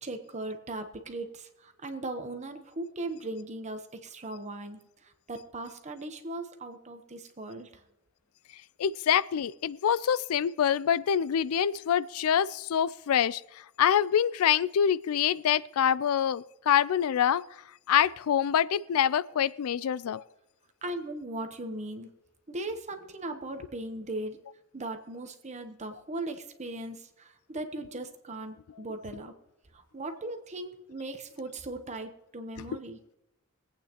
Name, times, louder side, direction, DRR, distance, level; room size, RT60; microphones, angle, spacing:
voice 1, 0.0-7.7 20.8-22.1 22.5-24.4 24.7-29.3 29.7-33.0, right 2 dB, 30° right, 7 dB, 0.9 m, -38 dB
voice 2, 8.8-13.4 13.8-17.4 17.9-20.2, left 9 dB, 80° left, 19 dB, 0.4 m, -25 dB
23.5 x 8.7 x 2.9 m, 0.89 s
head